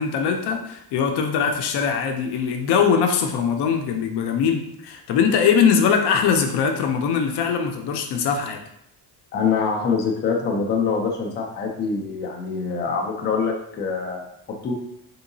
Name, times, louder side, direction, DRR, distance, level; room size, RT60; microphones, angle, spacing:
voice 1, 0.0-8.6, left 6 dB, 75° left, 4 dB, 0.6 m, -21 dB
voice 2, 9.3-14.2 14.6-14.7, left 5 dB, 30° left, 1 dB, 0.4 m, -24 dB
3.7 x 2.8 x 2.6 m, 0.74 s
cardioid pair, 160°, 40 cm